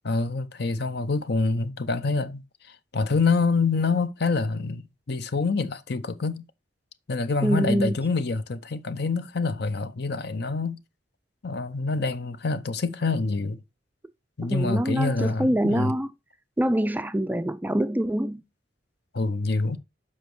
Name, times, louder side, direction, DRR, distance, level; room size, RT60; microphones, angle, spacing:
voice 1, 0.0-6.4 7.1-10.8 11.4-13.6 14.4-15.9 19.1-19.8, left 3 dB, 60° left, 0.7 m, -26 dB
voice 2, 7.4-8.0 14.4-16.1 16.6-18.4, right 1 dB, 10° right, 0.3 m, -25 dB
7.4 x 5.2 x 4.7 m
head